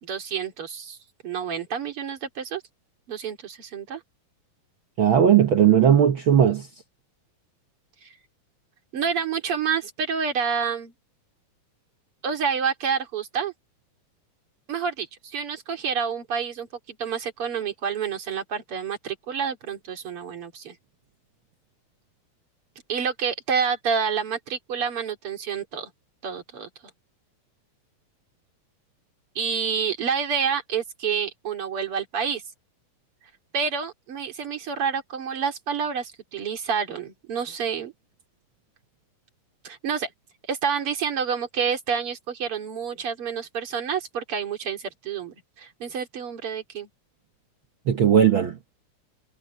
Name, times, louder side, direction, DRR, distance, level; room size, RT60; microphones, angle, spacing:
voice 1, 0.0-1.0 1.2-2.6 3.1-4.0 8.0-8.1 8.9-10.9 12.2-13.5 14.7-20.8 22.9-25.9 26.2-26.7 29.3-32.4 33.5-37.9 39.6-40.1 40.5-46.9, right 6 dB, 45° right, 3.3 m, -28 dB
voice 2, 5.0-6.7 47.9-48.5, right 9 dB, 75° right, 1.2 m, -17 dB
omnidirectional pair, 3.8 m